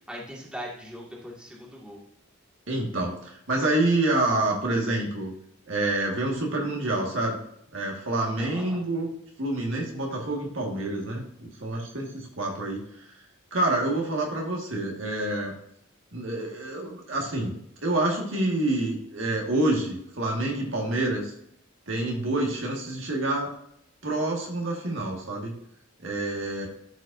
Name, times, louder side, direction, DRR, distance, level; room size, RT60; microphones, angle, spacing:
voice 1, 0.1-2.0 8.4-8.8, equal, 5° right, -4 dB, 2.0 m, -40 dB
voice 2, 2.7-5.3 5.7-7.4 7.7-9.1 9.4-13.1 13.5-15.5 16.1-21.3 21.9-23.5 24.0-25.6 26.0-26.7, right 2 dB, 70° right, 0 dB, 1.8 m, -27 dB
13.5 x 5.1 x 2.6 m, 0.73 s
head